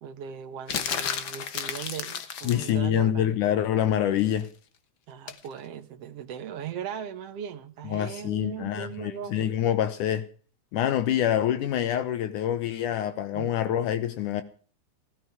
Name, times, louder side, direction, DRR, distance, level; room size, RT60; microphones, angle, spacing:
voice 1, 0.0-3.3 5.1-9.5 13.3-13.7, right 8 dB, 60° right, 1.8 m, -39 dB
sound 1, 0.7-2.8 5.3-5.5, left 7 dB, 60° left, 1.3 m, -32 dB
voice 2, 2.4-4.5 7.9-10.3 10.7-14.4, left 10 dB, 75° left, 2.4 m, -26 dB
16.5 x 16.0 x 4.7 m
omnidirectional pair, 3.7 m